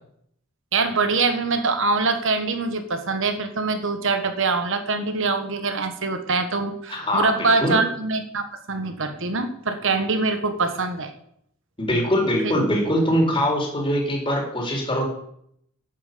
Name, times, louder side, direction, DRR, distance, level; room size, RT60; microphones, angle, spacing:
voice 1, 0.7-11.1 12.4-12.5, right 3 dB, 65° right, 8 dB, 1.4 m, -24 dB
voice 2, 6.9-7.9 11.8-15.0, equal, 25° left, -1 dB, 4.1 m, -22 dB
11.0 x 8.8 x 6.9 m, 0.70 s
head